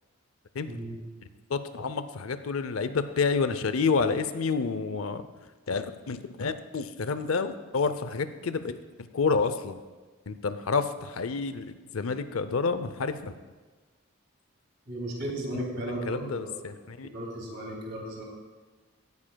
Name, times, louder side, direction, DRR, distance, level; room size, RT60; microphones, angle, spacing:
voice 1, 1.5-5.2 5.7-9.8 10.3-13.4 15.5-17.1, left 4 dB, 85° left, 11 dB, 0.6 m, -29 dB
voice 2, 14.9-16.5 17.0-18.2, right 1 dB, 55° right, -1 dB, 2.5 m, -35 dB
16.5 x 9.6 x 2.3 m, 1.3 s
head